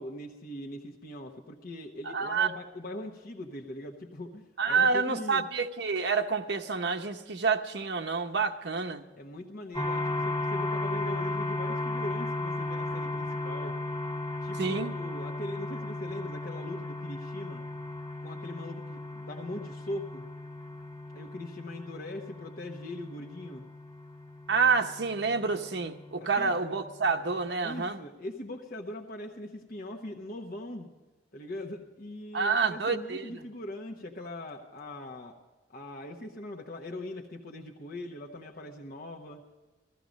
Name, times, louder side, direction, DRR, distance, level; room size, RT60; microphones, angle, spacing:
voice 1, 0.0-5.4 9.2-13.8 14.4-17.7 18.2-20.3 21.1-23.6 26.2-26.5 27.6-30.9 31.3-35.3 35.7-39.4, left 1 dB, 55° left, 1 dB, 1.1 m, -41 dB
voice 2, 2.1-2.5 4.6-9.0 14.6-14.9 24.5-28.0 32.3-33.3, right 5 dB, 65° right, 4 dB, 0.8 m, -28 dB
sound 1, 9.7-27.5, left 2 dB, 25° left, 1.6 m, -36 dB
16.5 x 14.0 x 5.2 m, 1.2 s
head